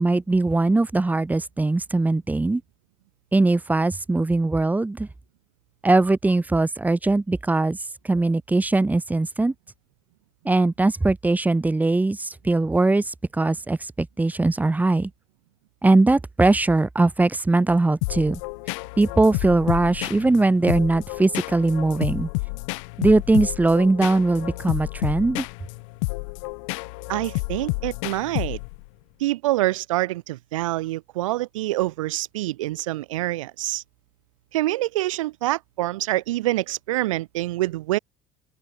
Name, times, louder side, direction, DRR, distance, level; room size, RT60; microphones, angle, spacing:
voice 1, 0.0-2.6 3.3-5.1 5.8-7.8 8.0-9.5 10.4-15.1 15.8-18.4 19.0-22.3 23.0-25.5, right 2 dB, 10° right, 0.5 m, -20 dB
sound 1, 18.0-28.9, left 30 dB, 70° left, 1.8 m, -30 dB
voice 2, 27.1-28.6 29.2-33.8 34.5-38.0, right 17 dB, 80° right, 1.3 m, -26 dB
open air
hypercardioid pair, 65°, 17 cm